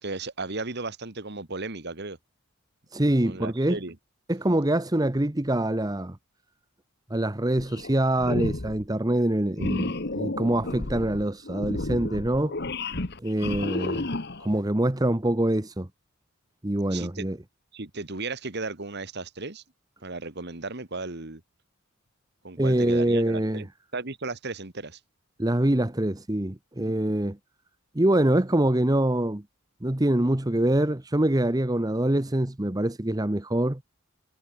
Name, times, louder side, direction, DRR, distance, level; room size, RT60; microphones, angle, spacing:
voice 1, 0.0-2.2 3.2-4.0 16.9-17.3 17.7-19.6 20.0-21.4 22.4-25.0 26.8-26.9, right 3 dB, 50° right, 1.9 m, -35 dB
voice 2, 2.9-3.8 4.3-6.2 7.1-12.5 13.2-14.1 14.4-15.9 16.6-17.4 22.6-23.6 25.4-27.4 27.9-29.4 29.8-33.8, right 1 dB, 15° right, 0.9 m, -24 dB
sound 1, 7.6-7.9 8.2-8.8 9.6-14.6, left 2 dB, 50° left, 1.5 m, -32 dB
head